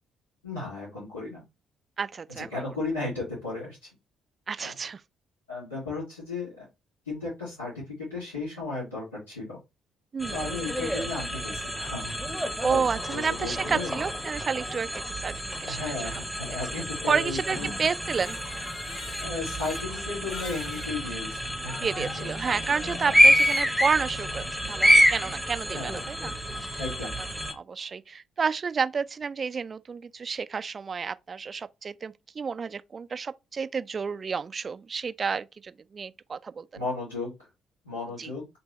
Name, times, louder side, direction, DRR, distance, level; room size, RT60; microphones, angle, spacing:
voice 1, 0.4-1.4 2.3-3.9 4.6-4.7 5.5-6.7 7.0-9.6 10.3-12.1 12.4-13.9 15.6-17.7 19.2-21.7 22.2-22.3 22.8-23.2 25.7-26.0 26.8-27.2 36.7-37.5 37.8-38.5, left 3 dB, 85° left, 1.5 m, -35 dB
voice 2, 2.0-2.5 4.5-5.0 10.1-10.5 12.6-15.3 15.6-15.9 16.5-16.6 17.1-18.4 21.8-26.3 26.6-26.7 27.5-36.8 38.2-38.3, right 5 dB, 40° right, 0.3 m, -30 dB
sound 1, 10.2-27.5, equal, ahead, 0.9 m, -27 dB
Crying sobbing, 17.8-20.9 21.7-21.8 23.1-23.9, left 4 dB, 65° left, 1.5 m, -44 dB
3.6 x 2.8 x 3.0 m
figure-of-eight pair, 45°, 0 cm